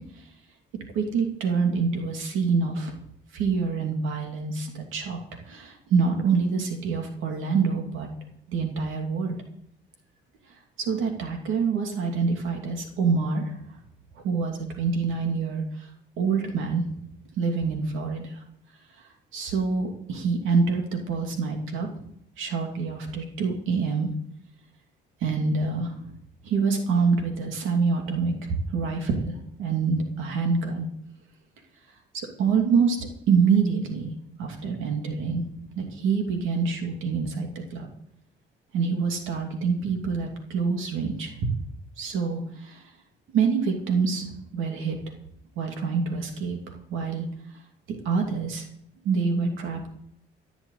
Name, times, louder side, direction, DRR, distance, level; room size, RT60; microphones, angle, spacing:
voice 1, 0.9-2.9 3.3-5.2 5.5-8.1 8.5-9.4 10.8-13.6 14.2-15.6 16.2-16.8 17.4-18.3 19.3-21.9 22.4-24.1 25.2-26.0 26.4-29.3 29.6-30.9 32.1-33.0 33.3-34.1 34.4-35.4 35.8-37.9 38.7-41.3 42.0-42.8 43.3-45.0 45.6-46.6 46.9-47.3 47.9-48.7 49.0-49.9, right 5 dB, 90° right, 3 dB, 2.7 m, -26 dB
15.0 x 7.1 x 8.4 m, 0.72 s
cardioid pair, 90°, 20 cm